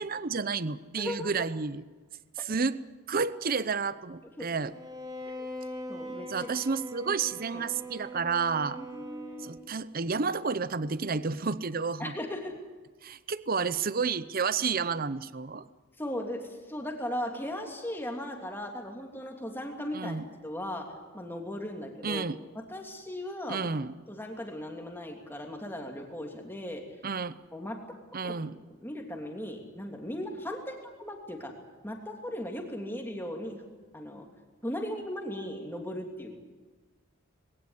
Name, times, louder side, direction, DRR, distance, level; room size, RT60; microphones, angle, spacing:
voice 1, 0.0-1.8 2.5-2.8 3.1-4.7 6.3-8.8 9.4-12.1 13.0-15.6 19.9-20.3 22.0-22.4 23.5-23.9 27.0-27.4 28.1-28.6, right 5 dB, 40° right, 15 dB, 0.7 m, -31 dB
voice 2, 1.0-1.5 2.4-2.5 4.4-4.5 5.2-5.5 5.9-6.5 7.5-7.6 8.8-9.5 12.0-12.5 16.0-20.2 20.4-22.2 22.5-23.7 24.1-26.8 27.5-27.8 28.2-28.3 28.8-31.5 31.8-33.6 33.9-34.3 34.6-36.3, left 1 dB, 10° left, 2 dB, 2.9 m, -37 dB
Bowed string instrument, 4.7-9.8, equal, 15° right, 2.4 m, -41 dB
21.0 x 17.0 x 9.9 m, 1.4 s
head